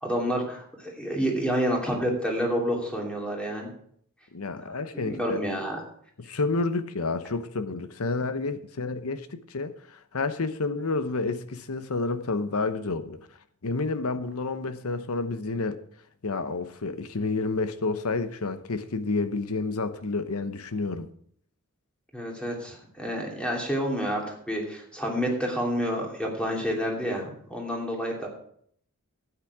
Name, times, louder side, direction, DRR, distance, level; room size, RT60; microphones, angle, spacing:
voice 1, 0.0-3.7 4.9-5.8 22.1-28.3, equal, 5° left, 2.8 m, -29 dB
voice 2, 4.3-5.4 6.2-13.2 13.6-15.8 16.2-21.1, left 3 dB, 80° left, 0.9 m, -30 dB
12.0 x 9.0 x 4.9 m
head